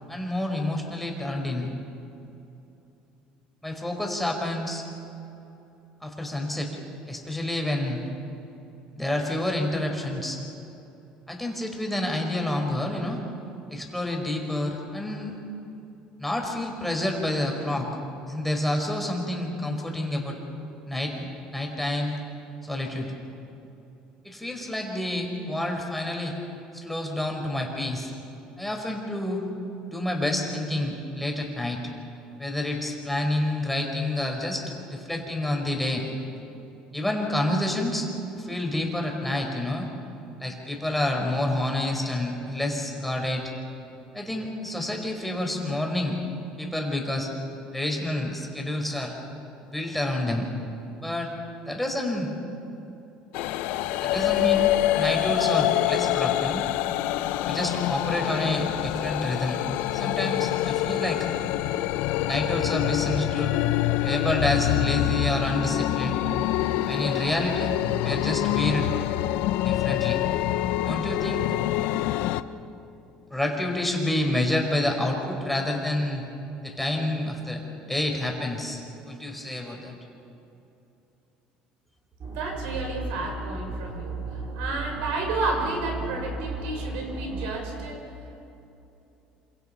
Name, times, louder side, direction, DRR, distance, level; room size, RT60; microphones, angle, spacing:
voice 1, 0.1-1.7 3.6-4.9 6.0-6.7 7.1-8.0 8.9-10.4 11.3-13.2 13.7-15.4 16.2-17.9 18.3-20.4 20.9-22.1 22.6-23.1 24.2-26.3 26.7-28.1 28.6-29.4 29.9-31.8 32.4-36.1 36.9-39.9 40.4-43.5 44.1-46.2 46.6-47.3 47.7-49.1 49.6-50.5 51.0-51.3 51.7-52.3 54.0-56.7 57.5-59.6 59.9-61.3 62.2-63.6 64.0-66.2 66.9-67.7 68.0-68.9 69.6-70.2 70.8-71.5 73.3-76.2 76.6-78.8 79.1-80.0, left 1 dB, 5° left, 1 dB, 5.0 m, -28 dB
sound 1, 53.3-72.4, left 14 dB, 75° left, 0.8 m, -26 dB
sound 2, 82.2-87.6, right 3 dB, 45° right, 6.3 m, -35 dB
voice 2, 82.2-88.1, right 3 dB, 80° right, 1 dB, 6.1 m, -31 dB
28.0 x 26.0 x 5.8 m, 2.9 s
supercardioid pair, 100°, 3 cm